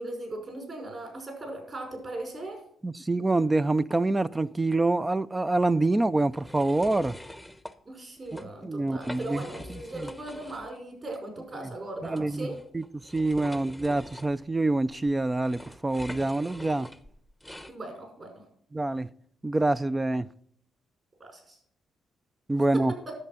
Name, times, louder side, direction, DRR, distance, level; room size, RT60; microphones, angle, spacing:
voice 1, 0.0-2.6 7.9-12.6 17.7-18.4 21.2-21.6 22.7-23.1, right 2 dB, 35° right, 5.4 m, -38 dB
voice 2, 2.8-7.2 8.6-9.4 9.7-10.1 12.0-12.8 13.1-16.9 18.7-19.1 19.4-20.3 22.5-22.9, right 2 dB, 15° right, 0.4 m, -26 dB
sound 1, 6.3-7.7 8.2-8.4 8.9-10.8 11.1-11.2 12.1-17.7, left 1 dB, ahead, 0.8 m, -44 dB
11.0 x 7.6 x 5.6 m
cardioid pair, 90°, 0 cm